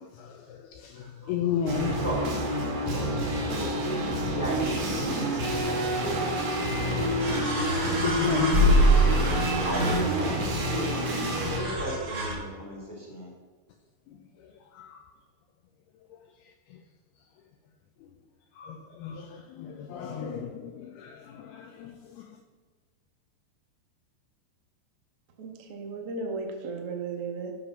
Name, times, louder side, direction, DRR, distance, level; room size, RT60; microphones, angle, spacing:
voice 1, 0.0-2.0 7.1-7.4 8.0-8.7 14.4-15.0 16.7-16.8 18.6-22.4, left 8 dB, 80° left, 2.3 m, -34 dB
voice 2, 0.9-3.1 3.4-7.1 9.5-11.1 11.5-13.3, equal, 10° left, 1.2 m, -37 dB
sound 1, 1.7-11.6, right 1 dB, 55° right, 2.9 m, -28 dB
sound 2, 6.5-6.6 7.2-10.4 11.4-12.3, right 1 dB, 35° right, 3.0 m, -24 dB
voice 3, 25.4-27.5, right 4 dB, 80° right, 1.3 m, -35 dB
13.0 x 4.9 x 5.7 m
omnidirectional pair, 5.1 m